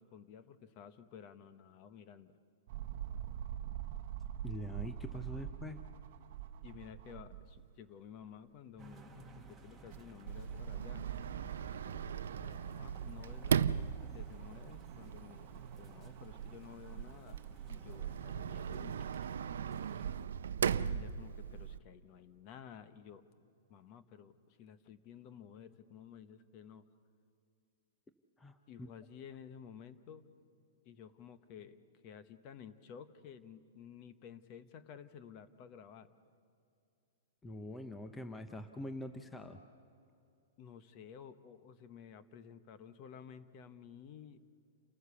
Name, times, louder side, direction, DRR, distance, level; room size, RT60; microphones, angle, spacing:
voice 1, 0.0-2.3 6.6-11.4 11.8-17.4 17.7-19.0 20.6-23.2 23.7-26.8 28.7-30.3 30.8-36.1 40.6-44.4, left 8 dB, 30° left, 11 dB, 0.9 m, -53 dB
sound 1, 2.7-7.7 8.2-8.3 9.6-18.2 18.9-19.0, right 11 dB, 45° right, 1.0 m, -46 dB
voice 2, 4.4-5.8 28.4-28.9 37.4-39.6, left 1 dB, 10° left, 7 dB, 0.7 m, -44 dB
sound 2, 8.8-20.2, right 3 dB, 5° right, 1.5 m, -56 dB
Sliding door, 10.3-21.8, right 8 dB, 85° right, 0.5 m, -38 dB
29.0 x 14.5 x 7.0 m, 2.6 s
hypercardioid pair, 160°, 0 cm